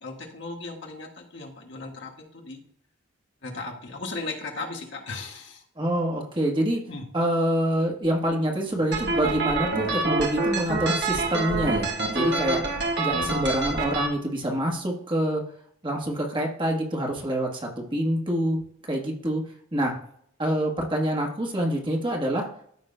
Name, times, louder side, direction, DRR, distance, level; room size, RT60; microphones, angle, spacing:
voice 1, 0.0-2.6 3.4-5.6 6.9-7.0, left 3 dB, 60° left, 1 dB, 1.5 m, -36 dB
voice 2, 5.8-6.8 7.1-12.6 13.0-15.4 15.8-18.6 18.9-19.4 19.7-19.9 20.4-22.5, right 1 dB, 25° right, 1 dB, 1.2 m, -26 dB
sound 1, 8.9-14.1, right 3 dB, 55° right, 1.4 m, -26 dB
13.5 x 5.7 x 2.2 m, 0.65 s
head